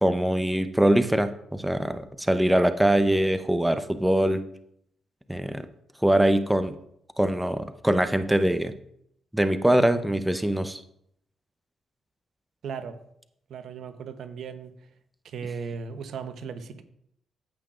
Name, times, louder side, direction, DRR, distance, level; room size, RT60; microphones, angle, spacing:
voice 1, 0.0-4.4 5.3-5.6 6.0-6.7 7.2-8.7 9.3-10.8, right 1 dB, 10° right, 0.8 m, -23 dB
voice 2, 12.6-13.0 13.5-14.7 15.2-16.8, right 6 dB, 70° right, 0.9 m, -36 dB
14.5 x 5.8 x 2.5 m
supercardioid pair, 55°, 0 cm